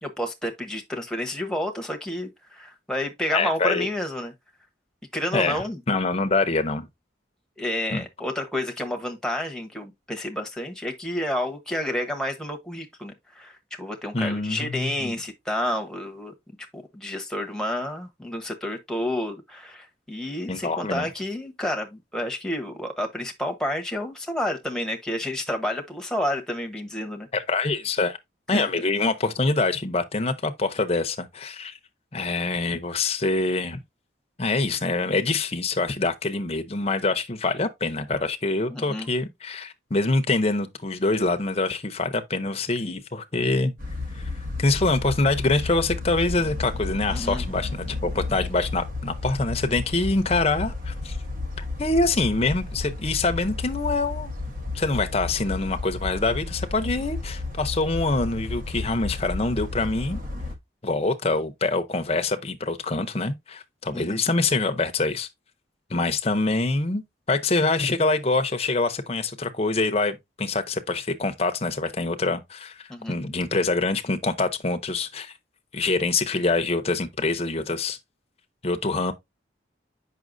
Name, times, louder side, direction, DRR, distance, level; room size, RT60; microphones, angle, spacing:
voice 1, 0.0-4.3 5.1-5.8 7.6-16.3 16.7-27.3 28.5-28.7 38.7-39.1 47.1-47.4 56.8-56.9 63.9-64.2 72.9-73.2, left 1 dB, 5° left, 1.1 m, -30 dB
voice 2, 3.3-3.9 5.3-6.9 7.9-8.0 14.1-15.1 20.5-21.1 27.3-28.2 28.5-31.8 32.1-33.8 34.4-43.7 44.2-44.3 44.6-51.2 51.8-54.3 54.7-60.2 60.8-65.3 65.9-67.0 67.3-75.3 75.7-78.0 78.6-79.1, left 3 dB, 35° left, 0.7 m, -25 dB
sound 1, 43.8-60.6, left 3 dB, 45° right, 1.1 m, -33 dB
7.4 x 5.7 x 2.6 m
head